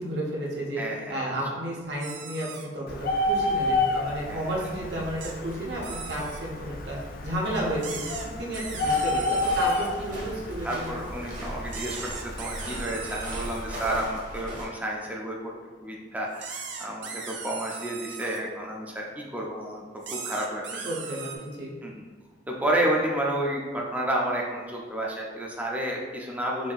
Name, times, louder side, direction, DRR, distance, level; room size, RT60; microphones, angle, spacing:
voice 1, 0.0-0.8 1.1-11.0 20.7-21.7, right 1 dB, 65° right, -3 dB, 0.9 m, -32 dB
voice 2, 0.8-1.4 4.3-4.5 8.8-9.0 10.6-15.5 15.8-20.9 21.8-22.0 22.5-26.7, right 1 dB, 10° right, -2 dB, 0.5 m, -31 dB
sound 1, 2.0-2.7 5.2-5.3 5.8-6.4 7.8-9.9 11.7-13.7 16.3-18.4 20.0-21.4, right 5 dB, 90° right, 0.5 m, -38 dB
Bird, 2.9-14.1, left 2 dB, 50° left, 0.4 m, -31 dB
sound 2, 8.7-14.7, equal, 45° right, 1.2 m, -39 dB
5.2 x 2.7 x 2.4 m, 1.4 s
head